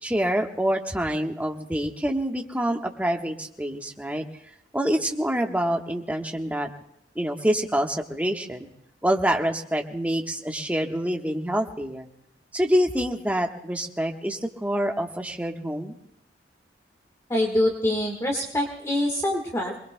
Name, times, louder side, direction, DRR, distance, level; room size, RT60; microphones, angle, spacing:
voice 1, 0.0-4.2 4.7-6.7 7.1-8.7 9.0-12.1 12.5-15.9, equal, 10° right, 2 dB, 1.2 m, -26 dB
voice 2, 17.3-19.8, left 1 dB, 15° left, 1 dB, 1.6 m, -25 dB
27.5 x 21.0 x 2.2 m, 0.76 s
head